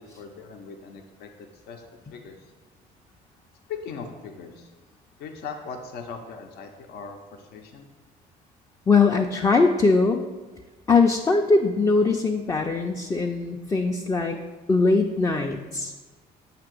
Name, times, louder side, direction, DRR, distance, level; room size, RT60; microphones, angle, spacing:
voice 1, 0.0-2.4 3.7-4.7 5.2-7.9, left 5 dB, 75° left, 3 dB, 0.6 m, -39 dB
voice 2, 8.9-10.2 10.9-14.4 14.7-15.9, left 4 dB, 20° left, 2 dB, 0.4 m, -21 dB
7.4 x 2.9 x 6.0 m, 1.3 s
cardioid pair, 110°, 17 cm